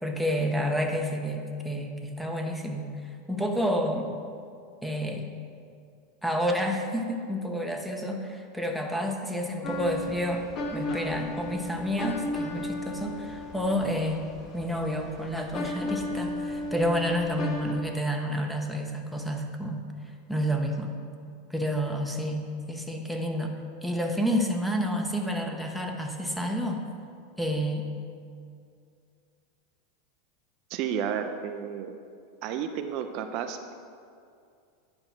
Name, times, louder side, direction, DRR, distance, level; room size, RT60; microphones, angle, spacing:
voice 1, 0.0-2.9 3.3-4.1 4.8-5.3 6.2-10.5 10.7-14.3 14.5-19.8 20.3-20.9 21.5-23.5 23.8-26.8 27.4-27.8, equal, ahead, 2 dB, 1.0 m, -29 dB
sound 1, 9.6-17.7, left 1 dB, 45° left, 1.2 m, -35 dB
voice 2, 30.7-32.0 32.4-33.8, right 8 dB, 55° right, 7 dB, 0.5 m, -32 dB
9.8 x 4.2 x 5.8 m, 2.4 s
hypercardioid pair, 105°, 0 cm